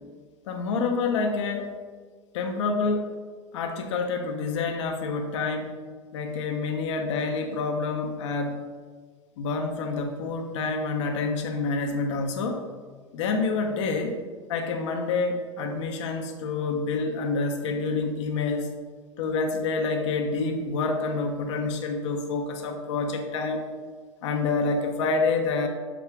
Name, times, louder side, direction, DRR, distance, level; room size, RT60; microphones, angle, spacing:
voice 1, 0.5-1.7 2.3-3.1 3.5-5.7 6.1-8.6 9.4-12.6 13.1-14.1 14.5-18.7 19.2-23.6 24.2-25.7, left 4 dB, 70° left, 3 dB, 0.7 m, -27 dB
6.1 x 4.7 x 3.4 m, 1.5 s
hypercardioid pair, 90°, 16 cm